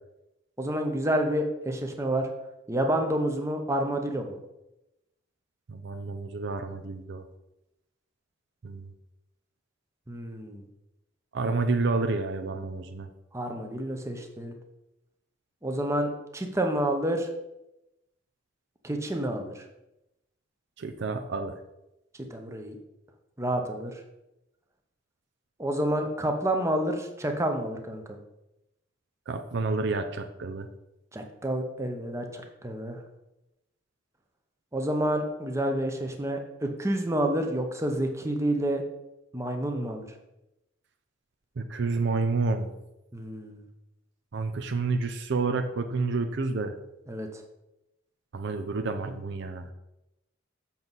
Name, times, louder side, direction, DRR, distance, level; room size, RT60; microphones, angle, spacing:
voice 1, 0.6-2.3 2.7-4.4 10.1-10.6 13.3-14.5 15.6-17.3 18.8-19.6 22.3-22.8 23.4-24.0 25.6-28.2 31.1-33.0 34.7-38.8 39.3-40.1 43.1-43.6 47.1-47.4, right 1 dB, 15° right, 4 dB, 0.8 m, -29 dB
voice 2, 5.7-7.2 8.6-8.9 11.3-13.1 20.8-21.6 29.3-30.7 41.6-42.7 44.3-46.7 48.3-49.7, right 3 dB, 60° right, 7 dB, 0.5 m, -29 dB
7.2 x 6.0 x 4.0 m, 0.92 s
head